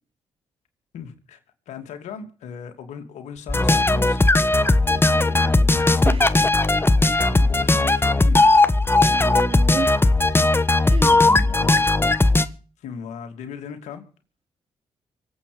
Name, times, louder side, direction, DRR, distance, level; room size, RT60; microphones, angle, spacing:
voice 1, 0.9-1.4 1.7-4.3 7.2-8.6 11.1-12.3 12.8-14.0, left 6 dB, 80° left, 3.0 m, -37 dB
sound 1, 3.5-12.5, left 2 dB, 20° left, 1.4 m, -18 dB
voice 2, 4.9-5.8 6.0-6.4 9.1-10.0 10.8-11.2, right 5 dB, 55° right, 3.7 m, -33 dB
25.0 x 8.5 x 5.3 m
supercardioid pair, 50°, 12 cm